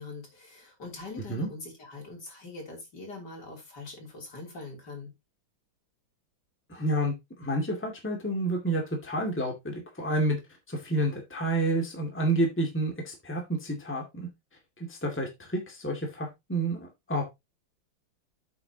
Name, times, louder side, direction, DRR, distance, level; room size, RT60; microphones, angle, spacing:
voice 1, 0.0-5.1, left 3 dB, 55° left, 3.8 m, -43 dB
voice 2, 6.7-10.4 10.7-14.3 14.8-17.2, right 1 dB, 5° left, 2.1 m, -29 dB
8.5 x 8.1 x 2.9 m
omnidirectional pair, 2.2 m